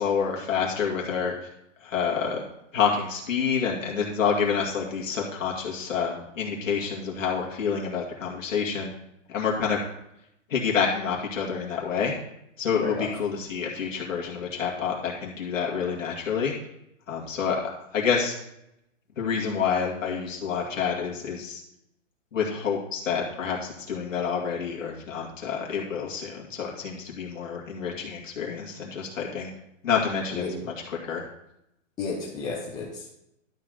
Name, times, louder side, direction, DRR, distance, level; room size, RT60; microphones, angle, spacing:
voice 1, 0.0-1.3 1.8-2.4 2.7-8.9 9.3-9.8 10.5-12.1 12.6-16.5 17.1-17.6 17.9-18.4 19.2-21.6 22.3-29.5 29.8-31.2, left 6 dB, 85° left, -2 dB, 2.3 m, -28 dB
voice 2, 32.0-33.2, left 4 dB, 10° left, -5 dB, 0.8 m, -32 dB
11.5 x 4.0 x 6.4 m, 0.82 s
hypercardioid pair, 160°, 38 cm